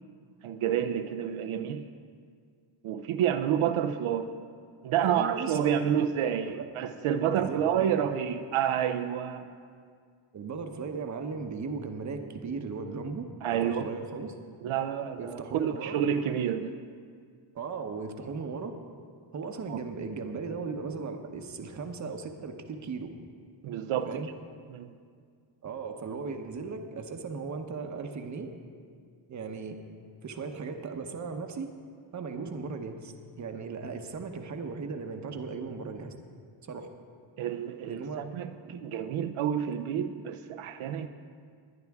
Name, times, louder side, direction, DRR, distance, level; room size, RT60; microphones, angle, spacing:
voice 1, 0.4-1.8 2.8-4.3 4.8-9.5 13.4-13.8 14.6-16.7 19.7-19.8 23.6-24.3 24.7-24.9 37.4-41.1, right 9 dB, 80° right, 8 dB, 0.7 m, -29 dB
voice 2, 5.0-6.7 7.2-8.4 10.3-13.3 13.5-14.3 15.2-15.9 17.5-18.7 19.3-23.1 24.1-24.3 25.6-28.5 29.3-29.8 30.2-31.7 32.1-33.1 33.4-36.1 36.7-36.9 37.9-38.2 38.6-38.8, right 4 dB, 35° right, 5 dB, 0.9 m, -37 dB
20.5 x 11.0 x 3.6 m, 2.1 s
wide cardioid pair, 175°, 49 cm